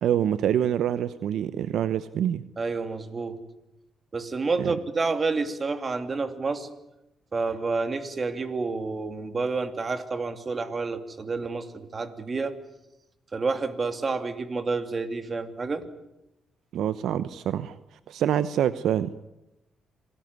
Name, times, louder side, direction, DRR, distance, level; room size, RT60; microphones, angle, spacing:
voice 1, 0.0-2.4 4.6-4.8 16.7-17.8 18.1-19.1, right 10 dB, 75° right, 14 dB, 0.9 m, -26 dB
voice 2, 2.6-3.4 4.1-6.7 7.3-12.5 13.3-15.9, right 4 dB, 35° right, 9 dB, 2.9 m, -29 dB
27.0 x 19.0 x 9.6 m, 0.90 s
cardioid pair, 90°, 0 cm